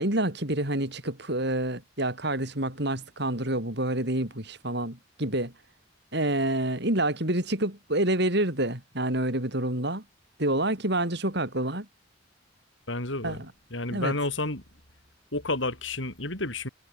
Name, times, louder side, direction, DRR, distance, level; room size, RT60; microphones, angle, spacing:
voice 1, 0.0-5.5 6.1-10.0 10.4-11.9 13.2-13.4 13.9-14.1, right 1 dB, 55° right, 5.7 m, -28 dB
voice 2, 12.9-13.4 13.7-14.6 15.3-16.7, left 2 dB, 70° left, 7.9 m, -30 dB
head